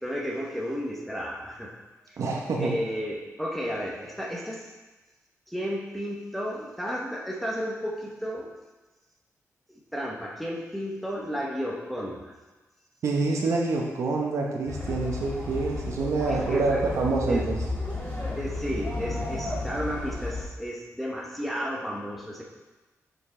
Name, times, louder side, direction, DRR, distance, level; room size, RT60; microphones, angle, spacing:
voice 1, 0.0-1.7 2.6-4.7 5.5-8.5 9.9-12.3 16.3-16.9 17.2-17.5 18.3-22.4, equal, ahead, -2 dB, 0.9 m, -33 dB
voice 2, 2.2-2.8 13.0-17.6, right 3 dB, 65° right, -1 dB, 1.0 m, -26 dB
sound 1, 14.7-20.4, left 2 dB, 25° left, 2.3 m, -33 dB
6.9 x 5.3 x 3.8 m, 1.2 s
wide cardioid pair, 140°, 5 cm